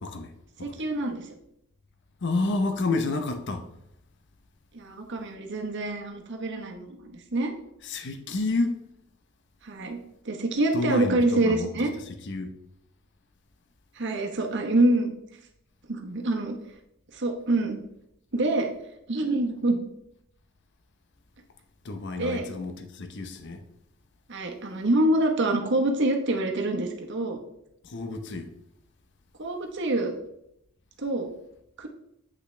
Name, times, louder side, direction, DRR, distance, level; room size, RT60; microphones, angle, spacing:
voice 1, 0.0-0.3 0.7-0.8 2.2-3.7 7.8-8.9 10.7-11.7 12.3-12.5 21.8-23.6 27.8-28.5, left 2 dB, 60° left, 0.8 m, -29 dB
voice 2, 0.6-1.3 4.7-7.5 9.6-10.0 10.2-11.9 13.9-15.1 15.9-16.6 17.1-17.8 18.3-18.7 19.1-19.8 22.2-22.5 24.3-27.4 29.4-30.1 31.0-31.3 31.8-31.9, right 2 dB, 60° right, 1.1 m, -26 dB
8.2 x 5.8 x 3.3 m
head